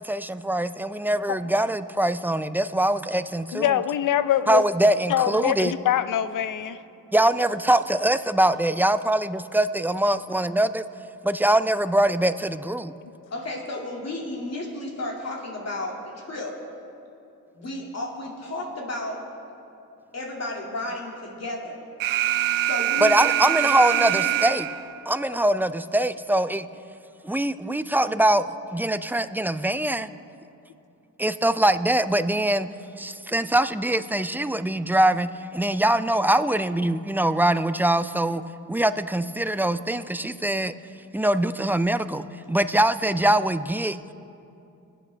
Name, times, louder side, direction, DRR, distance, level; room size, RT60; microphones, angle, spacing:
voice 1, 0.0-3.8 4.5-5.7 7.1-10.8 11.2-12.9 23.0-24.7 25.1-26.7 27.2-28.4 28.7-30.1 31.2-32.7 33.0-38.4 38.7-40.7 41.1-44.0, right 1 dB, 5° right, 13 dB, 0.4 m, -23 dB
voice 2, 3.5-4.6 5.1-6.8, left 11 dB, 65° left, 13 dB, 0.6 m, -24 dB
voice 3, 13.3-16.6 17.5-19.4 20.1-21.9 22.6-24.5 25.3-25.4, left 2 dB, 45° left, -2 dB, 2.4 m, -33 dB
Alarm, 22.0-25.0, right 13 dB, 70° right, 0.5 m, -24 dB
24.0 x 8.4 x 3.4 m, 2.7 s
cardioid pair, 70°, 34 cm